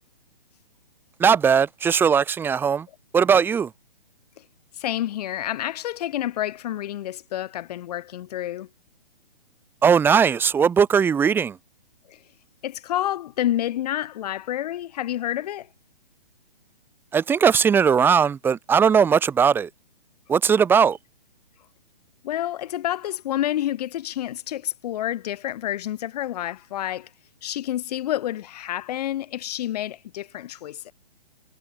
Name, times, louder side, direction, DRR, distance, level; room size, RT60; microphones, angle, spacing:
voice 1, 1.2-2.9 3.1-3.7 9.8-11.6 17.1-19.7 20.3-21.0, right 7 dB, 5° right, 1.2 m, -19 dB
voice 2, 4.8-8.7 12.1-12.2 12.6-15.7 22.2-27.1 27.4-30.9, left 12 dB, 40° left, 6.2 m, -29 dB
hypercardioid pair, 155°, 29 cm